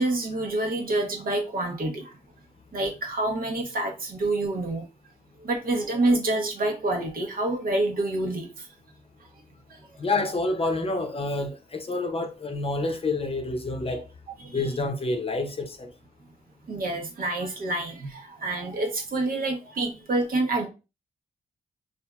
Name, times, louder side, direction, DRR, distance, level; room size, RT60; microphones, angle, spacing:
voice 1, 0.0-2.1 2.7-4.8 5.4-8.7 9.7-9.8 14.4-14.6 16.7-20.7, right 2 dB, 60° right, 0.9 m, -27 dB
voice 2, 10.0-14.0 14.5-15.9, left 2 dB, 35° left, 0.7 m, -28 dB
2.7 x 2.5 x 2.2 m
supercardioid pair, 45°, 17 cm